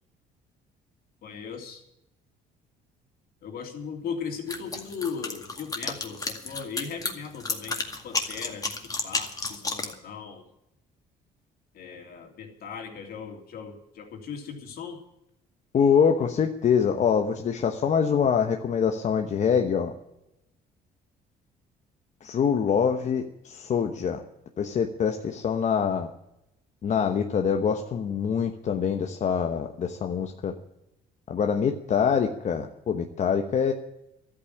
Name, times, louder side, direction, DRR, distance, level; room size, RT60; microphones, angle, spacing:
voice 1, 1.2-1.8 3.4-10.4 11.7-15.0, left 6 dB, 65° left, 3 dB, 3.2 m, -38 dB
sound 1, 4.5-9.9, left 3 dB, 20° left, 2.1 m, -31 dB
voice 2, 15.7-19.9 22.2-24.2 24.6-26.1 26.8-30.5 31.3-33.7, left 7 dB, 45° left, 4 dB, 1.1 m, -24 dB
13.0 x 8.8 x 9.9 m, 0.86 s
cardioid pair, 110°, 17 cm